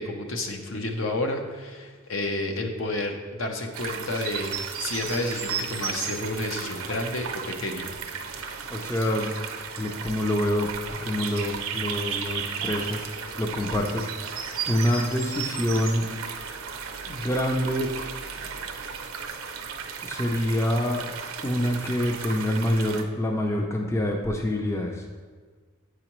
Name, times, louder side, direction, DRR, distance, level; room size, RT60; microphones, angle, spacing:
voice 1, 0.0-7.9, left 2 dB, 65° left, 4 dB, 0.7 m, -30 dB
sound 1, 3.7-23.0, right 6 dB, 80° right, 0.6 m, -34 dB
voice 2, 8.7-9.3 9.8-10.7 11.0-13.1 13.4-16.0 17.1-17.9 20.0-21.1 21.4-25.0, left 1 dB, 15° left, 2 dB, 0.4 m, -26 dB
7.9 x 4.9 x 3.0 m, 1.5 s
head